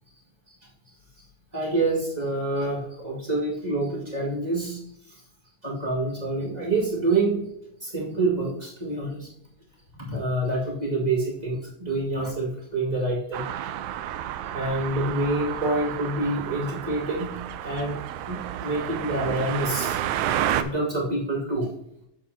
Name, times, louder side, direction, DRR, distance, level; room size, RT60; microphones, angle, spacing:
voice 1, 1.5-4.8 5.6-7.5 7.8-9.3 10.1-13.5 14.5-17.3 17.6-20.0 20.6-21.7, right 2 dB, 15° right, -5 dB, 1.6 m, -27 dB
sound 1, 13.3-20.6, right 11 dB, 90° right, 1.7 m, -31 dB
10.5 x 7.7 x 2.8 m, 0.74 s
omnidirectional pair, 4.1 m